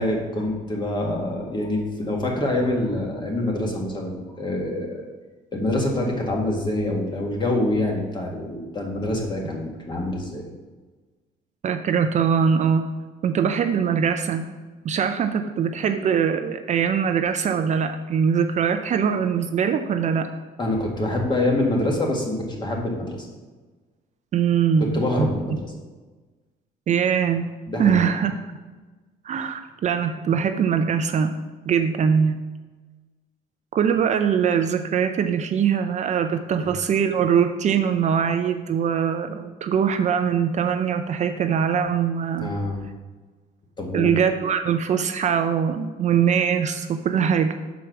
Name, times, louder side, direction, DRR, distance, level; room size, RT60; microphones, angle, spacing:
voice 1, 0.0-5.0 5.5-10.4 20.6-23.2 24.9-25.5 27.7-28.0 36.5-36.7 42.4-42.8 43.8-44.1, left 1 dB, 25° left, 0 dB, 1.7 m, -25 dB
voice 2, 11.6-12.9 13.2-14.5 14.8-20.3 24.3-25.3 26.9-27.5 27.8-28.3 29.2-31.3 31.7-32.4 33.7-42.5 43.9-47.6, right 7 dB, 45° right, 8 dB, 0.5 m, -22 dB
6.1 x 4.6 x 6.2 m, 1.3 s
cardioid pair, 110°, 17 cm